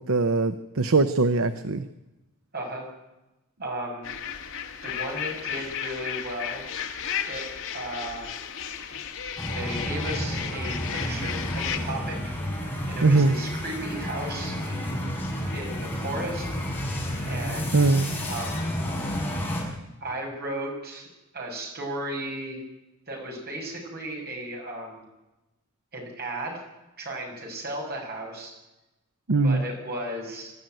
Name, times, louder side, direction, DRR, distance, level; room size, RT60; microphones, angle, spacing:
voice 1, 0.0-1.8 13.0-13.3 17.7-18.2 29.3-29.6, right 3 dB, 65° right, 11 dB, 0.9 m, -21 dB
voice 2, 2.5-2.8 3.6-4.1 4.8-6.6 7.2-8.4 9.5-12.3 12.9-14.6 15.5-16.5 17.3-18.0 18.3-18.6 20.0-21.1 21.3-22.6 23.1-25.0 25.9-26.6 27.0-28.5 29.4-30.5, right 1 dB, 45° right, 1 dB, 7.1 m, -35 dB
sound 1, 4.0-11.8, left 8 dB, 60° left, 2.2 m, -34 dB
sound 2, 9.4-19.6, equal, 10° left, 6.4 m, -31 dB
25.0 x 13.0 x 9.2 m, 1.0 s
head